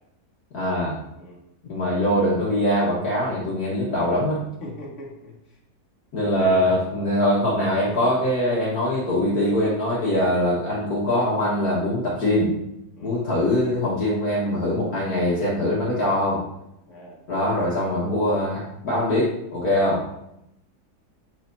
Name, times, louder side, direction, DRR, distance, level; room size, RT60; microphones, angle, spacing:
voice 1, 0.5-1.0 1.7-4.4 6.1-12.5 13.0-16.4 17.3-20.0, left 1 dB, 55° left, -7 dB, 1.8 m, -22 dB
voice 2, 4.6-5.3 6.2-6.7 13.0-13.2 16.9-17.2, equal, 40° left, -4 dB, 1.9 m, -39 dB
7.7 x 5.6 x 2.6 m, 0.82 s
omnidirectional pair, 2.0 m